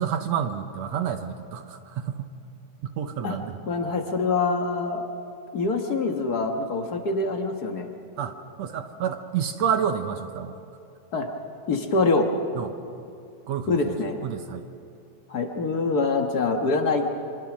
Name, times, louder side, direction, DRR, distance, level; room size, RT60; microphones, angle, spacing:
voice 1, 0.0-2.3 2.8-3.6 8.2-10.6 12.6-12.8 13.5-14.0 14.2-14.7, right 8 dB, 70° right, 8 dB, 1.7 m, -29 dB
voice 2, 3.7-5.0 5.5-7.9 11.1-11.3 11.7-12.3 13.7-14.2 15.3-17.1, left 3 dB, 55° left, 3 dB, 1.0 m, -25 dB
26.0 x 25.0 x 6.2 m, 2.6 s
omnidirectional pair, 3.8 m